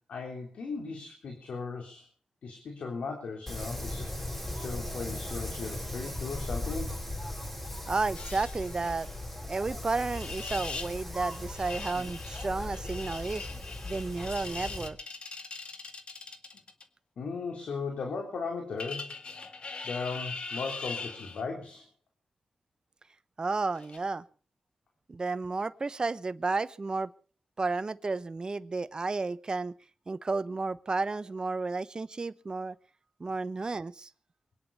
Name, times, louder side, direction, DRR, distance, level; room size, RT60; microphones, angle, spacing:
voice 1, 0.1-2.1 2.4-7.0 17.2-19.5 19.8-21.8, left 4 dB, 85° left, 3 dB, 3.4 m, -37 dB
Wind, 3.5-14.9, left 1 dB, 15° left, 6.0 m, -38 dB
voice 2, 7.9-9.1 9.5-13.5 13.8-15.0 23.4-24.2 25.1-27.1 27.6-29.7 30.1-32.7 33.2-34.1, right 3 dB, 45° right, 15 dB, 1.0 m, -32 dB
sound 1, 8.1-9.2 10.1-11.0 11.3-16.8 18.8-21.4 23.8-24.0, left 4 dB, 65° left, 2.0 m, -41 dB
23.5 x 10.0 x 5.6 m, 0.41 s
cardioid pair, 55°, 2 cm